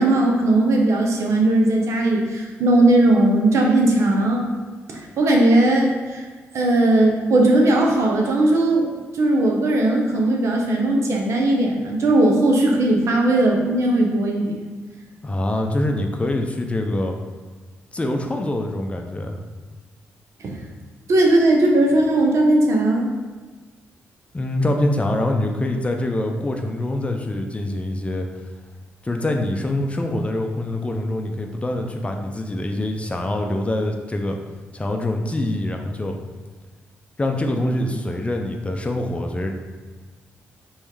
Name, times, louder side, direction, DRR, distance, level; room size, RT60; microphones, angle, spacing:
voice 1, 0.0-4.5 4.9-6.3 6.5-8.9 9.1-14.5 20.4-20.6 21.1-23.1, right 1 dB, 65° right, 0 dB, 0.8 m, -18 dB
voice 2, 15.2-17.1 17.9-19.4 24.3-28.3 29.0-34.4 34.7-36.1 37.2-39.5, left 1 dB, 25° left, 3 dB, 0.6 m, -24 dB
3.4 x 3.2 x 4.7 m, 1.4 s
supercardioid pair, 60°, 5 cm